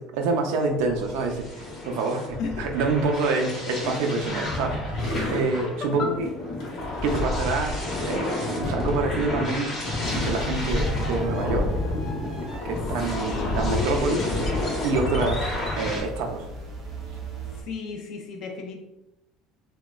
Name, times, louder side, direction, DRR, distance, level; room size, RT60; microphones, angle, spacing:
voice 1, 0.0-6.3 7.0-9.8 10.1-11.7 12.6-14.3 14.8-16.4, right 3 dB, 75° right, 3 dB, 0.4 m, -27 dB
sound 1, 0.7-16.0, left 2 dB, 30° left, 0.7 m, -29 dB
sound 2, 2.4-8.4, left 1 dB, 65° left, 0.9 m, -37 dB
voice 2, 2.4-2.7 5.6-6.2 13.2-13.9 17.5-18.8, left 4 dB, 45° left, 3 dB, 0.3 m, -34 dB
sound 3, 10.2-17.6, right 2 dB, 30° right, 0.6 m, -38 dB
3.0 x 2.1 x 2.3 m, 0.95 s
cardioid pair, 170°, 0 cm